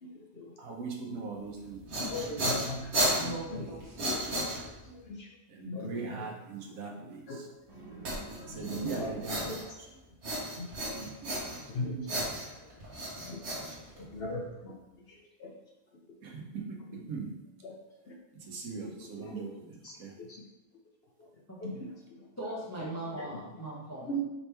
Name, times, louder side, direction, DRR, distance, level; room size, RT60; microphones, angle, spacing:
voice 1, 0.0-1.5 2.1-4.0 4.8-5.3 5.6-6.3 6.7-7.4 8.4-9.2 9.4-9.6 10.3-10.9 11.7-12.3 12.6-12.7 13.2-13.4 14.0-15.5 16.9-17.0 17.6-17.8 18.0-18.2 18.6-19.5 19.8-20.4 21.2-22.7 23.2-23.6 24.1-24.2, equal, 55° left, -1 dB, 0.8 m, -41 dB
voice 2, 0.6-2.1 5.5-7.2 8.5-9.7 10.9-11.6 16.2-17.3 18.3-20.2, right 4 dB, 85° right, 0 dB, 1.3 m, -40 dB
sound 1, 1.6-5.0 8.0-9.9 10.2-11.7 12.1-14.3, right 1 dB, 55° right, 1.4 m, -33 dB
voice 3, 3.1-4.0 8.9-9.2 13.5-14.1 21.5-21.6 22.4-24.1, right 1 dB, 15° left, -5 dB, 0.5 m, -40 dB
sound 2, 7.7-9.7, equal, 30° right, 1.3 m, -46 dB
5.1 x 3.0 x 3.3 m, 1.0 s
omnidirectional pair, 1.5 m